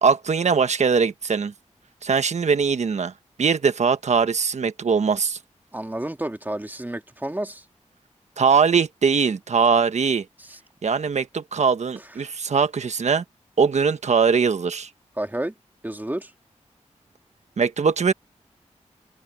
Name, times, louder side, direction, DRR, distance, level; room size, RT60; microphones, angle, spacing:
voice 1, 0.0-1.5 2.0-3.1 3.4-5.4 8.4-10.2 10.8-13.2 13.6-14.9 17.6-18.1, right 5 dB, 65° right, 1.3 m, -21 dB
voice 2, 5.7-7.6 10.4-10.6 15.2-15.5 15.8-16.3, right 1 dB, 15° right, 2.0 m, -30 dB
wide cardioid pair, 75°, 12 cm